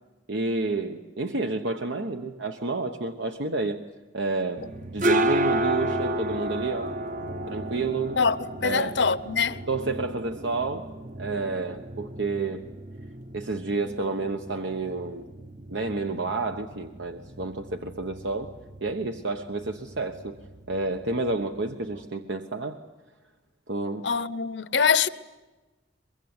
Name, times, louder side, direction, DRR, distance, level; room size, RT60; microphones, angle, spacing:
voice 1, 0.3-3.8 4.1-6.9 7.5-8.2 8.6-9.0 9.7-10.9 11.2-12.7 13.3-15.3 15.7-20.3 20.7-22.8 23.7-24.1, right 3 dB, 80° right, 1.1 m, -30 dB
sound 1, 4.6-22.1, right 1 dB, 45° right, 0.9 m, -33 dB
voice 2, 8.6-9.6 24.0-25.1, left 5 dB, 70° left, 0.9 m, -23 dB
23.5 x 23.0 x 9.6 m
head